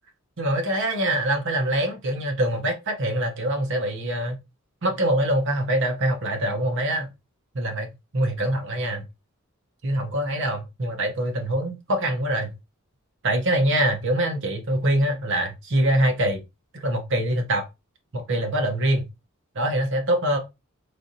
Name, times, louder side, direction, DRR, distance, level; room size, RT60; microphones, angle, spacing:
voice 1, 0.4-4.4 4.8-7.1 7.5-9.0 9.8-12.5 13.2-16.4 16.8-17.6 18.1-19.0 19.5-20.4, right 1 dB, 60° right, 0.8 m, -24 dB
3.3 x 2.5 x 2.6 m
head